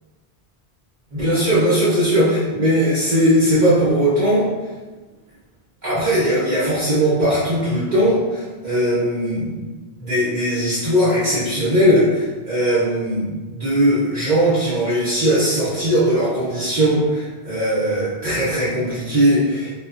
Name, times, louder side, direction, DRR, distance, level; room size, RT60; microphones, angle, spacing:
voice 1, 1.1-4.5 5.8-9.6 10.0-19.7, equal, 50° right, -10 dB, 0.8 m, -19 dB
2.8 x 2.2 x 2.4 m, 1.3 s
omnidirectional pair, 1.1 m